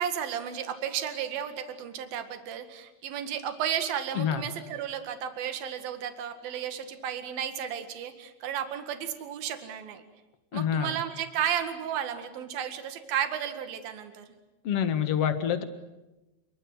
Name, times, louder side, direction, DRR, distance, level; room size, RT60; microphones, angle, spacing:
voice 1, 0.0-10.0 10.5-14.3, right 9 dB, 65° right, 8 dB, 3.7 m, -33 dB
voice 2, 10.5-11.0 14.6-15.6, left 9 dB, 50° left, 10 dB, 2.0 m, -27 dB
28.5 x 22.5 x 7.9 m, 1.0 s
omnidirectional pair, 4.6 m